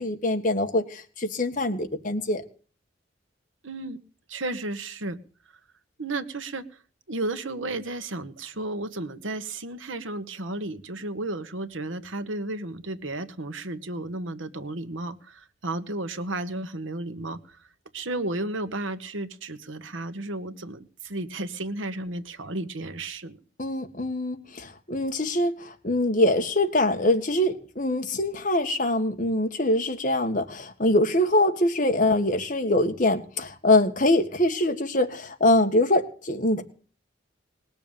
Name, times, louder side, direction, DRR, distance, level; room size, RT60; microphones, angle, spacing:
voice 1, 0.0-2.4 23.6-36.6, left 1 dB, 40° left, 5 dB, 1.8 m, -24 dB
voice 2, 3.6-4.0 4.3-5.2 6.0-6.6 7.1-17.6 17.9-23.4, right 2 dB, 85° right, 11 dB, 1.3 m, -33 dB
19.5 x 7.0 x 8.9 m, 0.41 s
head